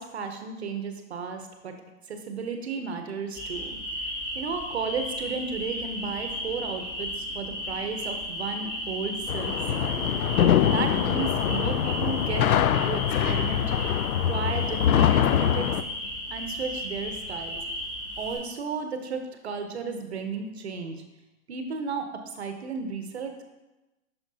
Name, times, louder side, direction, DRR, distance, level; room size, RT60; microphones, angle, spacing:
voice 1, 0.0-1.8 2.1-10.1 10.4-13.8 14.3-15.8 16.3-17.6 18.2-21.0 21.5-23.4, right 5 dB, 50° right, 6 dB, 0.7 m, -34 dB
sound 1, 3.3-18.4, equal, 15° left, 2.4 m, -34 dB
sound 2, 9.3-15.8, left 9 dB, 80° left, 0.5 m, -24 dB
9.2 x 5.8 x 2.7 m, 1.1 s
hypercardioid pair, 170°, 43 cm